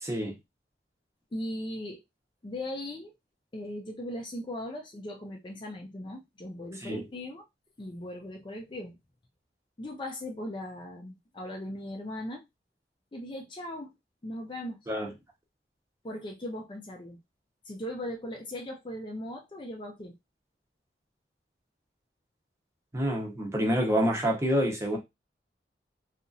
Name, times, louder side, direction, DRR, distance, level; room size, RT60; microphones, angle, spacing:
voice 1, 0.0-0.4 6.8-7.0 14.9-15.1 22.9-25.0, equal, 15° right, 0.7 m, -27 dB
voice 2, 1.3-2.0 2.4-3.1 3.5-7.4 7.8-9.0 9.8-12.4 13.1-13.9 14.2-14.9 16.0-17.2 17.6-20.1, left 1 dB, 25° left, 0.4 m, -38 dB
2.9 x 2.4 x 2.5 m
head